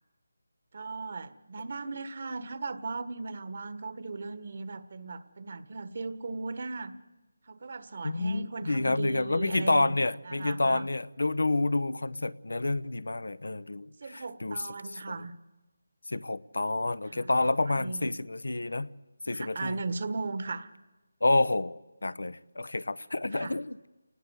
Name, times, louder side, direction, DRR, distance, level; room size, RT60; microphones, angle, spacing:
voice 1, 0.7-6.9 7.5-10.9 14.0-15.3 17.1-17.5 17.7-18.1 19.3-20.7 23.3-23.6, right 3 dB, 45° right, 1.5 m, -37 dB
voice 2, 8.0-14.6 15.1-15.2 16.1-18.9 19.2-19.8 21.2-23.9, left 2 dB, 90° left, 0.9 m, -29 dB
29.5 x 19.0 x 8.3 m
figure-of-eight pair, 170°, 0 cm